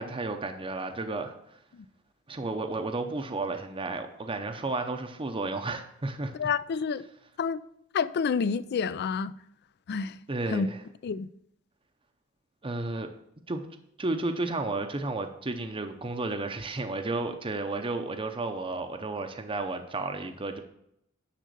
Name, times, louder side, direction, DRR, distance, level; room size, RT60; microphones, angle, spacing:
voice 1, 0.0-1.6 2.3-6.4 10.3-10.8 12.6-13.1 13.5-13.6 14.0-20.6, right 2 dB, 25° right, 0.7 m, -32 dB
voice 2, 6.4-7.1 7.4-7.6 7.9-9.3 9.9-10.2 10.5-10.7 11.0-11.3, left 5 dB, 50° left, 0.4 m, -28 dB
10.0 x 3.7 x 6.7 m
head